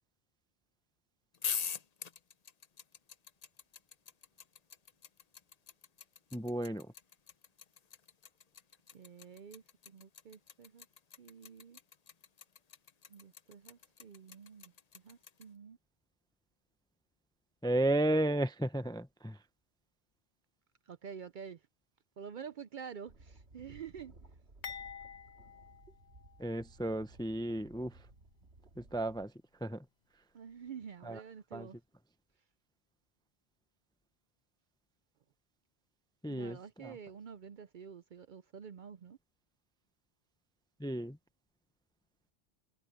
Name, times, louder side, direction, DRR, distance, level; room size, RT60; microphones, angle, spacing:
sound 1, 1.3-15.4, left 7 dB, 40° left, 0.7 m, -43 dB
voice 1, 6.3-6.9 17.6-19.4 26.4-28.1 28.8-29.3 29.6-29.9 31.0-31.2 31.5-31.7 36.2-36.9 40.8-41.2, right 1 dB, 5° left, 0.5 m, -33 dB
voice 2, 8.9-10.9 11.2-11.8 13.1-15.8 20.9-21.7 22.2-24.1 30.3-31.8 36.3-39.2, right 7 dB, 55° right, 0.6 m, -48 dB
sound 2, 23.1-29.3, right 2 dB, 70° right, 2.4 m, -59 dB
sound 3, 24.6-26.8 27.2-27.3 28.2-28.3, left 7 dB, 90° left, 1.4 m, -48 dB
omnidirectional pair, 1.1 m